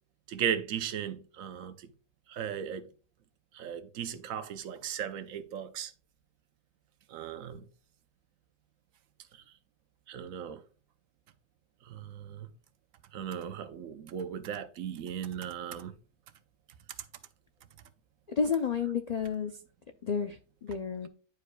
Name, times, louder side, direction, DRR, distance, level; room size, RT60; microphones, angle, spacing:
voice 1, 0.3-1.7 2.3-2.8 3.5-5.9 7.1-7.6 10.1-10.6 11.9-12.5 13.1-15.9, right 8 dB, 85° right, 1.1 m, -36 dB
voice 2, 18.3-19.5 20.0-21.1, left 6 dB, 80° left, 0.3 m, -31 dB
10.5 x 4.8 x 2.2 m
omnidirectional pair, 1.4 m